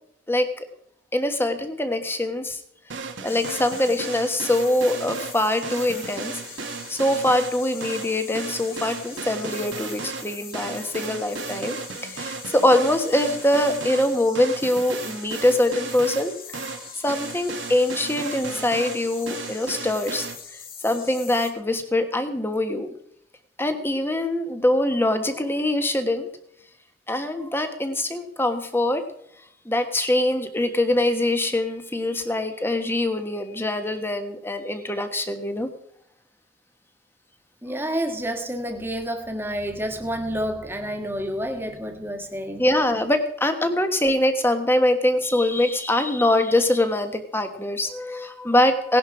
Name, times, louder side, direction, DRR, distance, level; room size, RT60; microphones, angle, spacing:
voice 1, 0.3-0.7 1.1-2.6 2.9-6.4 6.9-16.3 17.0-20.3 20.5-22.9 23.6-26.4 27.1-29.1 29.6-35.7 42.6-49.0, left 1 dB, 10° left, 7 dB, 1.3 m, -23 dB
sound 1, 2.9-20.3, right 4 dB, 75° right, 1.4 m, -35 dB
sound 2, 3.3-21.5, left 7 dB, 50° left, 2.0 m, -42 dB
voice 2, 37.6-42.6, equal, 10° right, 5 dB, 1.6 m, -29 dB
17.5 x 11.0 x 4.9 m, 0.72 s
head